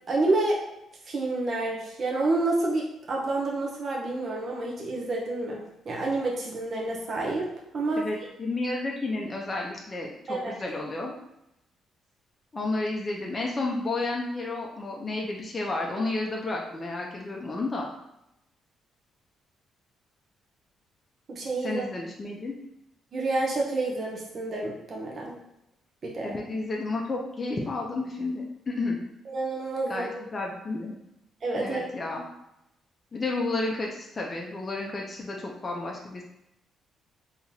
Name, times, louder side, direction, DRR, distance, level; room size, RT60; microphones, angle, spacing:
voice 1, 0.1-0.6 1.1-5.6 5.9-8.0 10.3-10.5 21.3-21.8 23.1-25.3 26.0-26.3 29.3-30.1 31.4-31.9, right 2 dB, 45° right, -2 dB, 0.7 m, -28 dB
voice 2, 7.9-11.2 12.5-17.9 21.6-22.5 26.2-29.0 29.9-31.0 31.6-32.3 33.1-36.2, left 2 dB, 30° left, -1 dB, 0.6 m, -31 dB
3.6 x 2.8 x 2.7 m, 0.84 s
cardioid pair, 90°, 0 cm